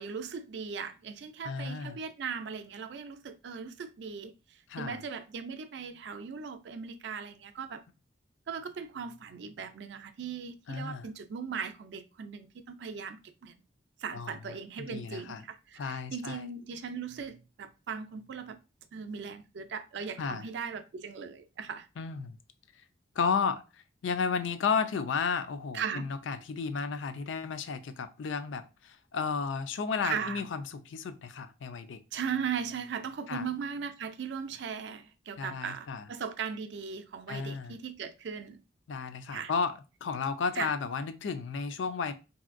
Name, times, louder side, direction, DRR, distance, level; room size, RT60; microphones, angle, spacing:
voice 1, 0.0-7.8 8.5-13.2 13.4-13.5 14.0-18.6 18.9-21.9 25.7-26.1 30.0-30.5 32.1-38.6 39.3-39.5 40.5-40.7, right 6 dB, 65° right, 0.4 m, -38 dB
voice 2, 1.4-2.0 4.7-5.0 10.7-11.1 14.1-14.3 14.9-15.4 15.8-16.4 20.2-20.5 22.0-22.4 23.2-23.6 24.0-32.0 33.3-33.4 35.4-36.0 37.3-37.8 38.9-39.7 40.0-42.1, left 5 dB, 80° left, 0.4 m, -33 dB
3.1 x 2.7 x 2.5 m
head